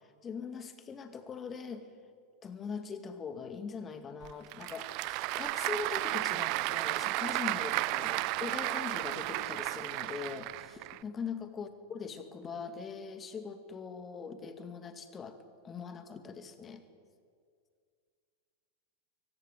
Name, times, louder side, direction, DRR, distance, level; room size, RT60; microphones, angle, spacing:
voice 1, 0.2-1.9 2.4-15.4 15.6-16.8, left 5 dB, 20° left, 9 dB, 2.3 m, -41 dB
Applause / Crowd, 4.2-11.0, right 21 dB, 45° right, 0.6 m, -33 dB
23.0 x 19.0 x 9.4 m, 2.2 s
figure-of-eight pair, 90°, 0 cm